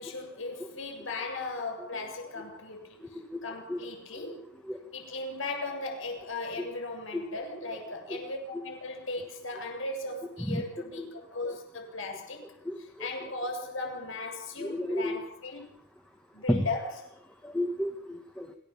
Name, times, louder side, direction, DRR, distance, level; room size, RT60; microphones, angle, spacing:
voice 1, 0.0-4.5 4.9-12.4 13.0-15.6 16.3-16.9, left 2 dB, 65° left, 7.4 m, -37 dB
voice 2, 14.6-15.2 16.5-16.7 17.4-18.5, left 1 dB, 5° left, 2.1 m, -31 dB
27.0 x 16.5 x 7.4 m
head